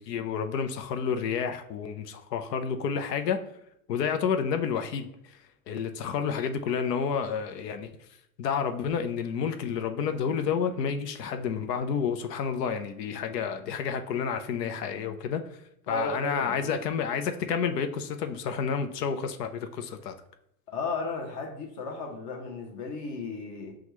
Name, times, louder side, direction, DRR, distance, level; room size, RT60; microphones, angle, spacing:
voice 1, 0.0-3.4 3.9-5.4 5.7-7.9 8.4-15.4 15.9-20.1, left 6 dB, 85° left, 0.7 m, -30 dB
voice 2, 15.9-16.7 20.7-23.8, left 3 dB, 40° left, 0.9 m, -34 dB
6.2 x 2.3 x 3.0 m
supercardioid pair, 140°, 47 cm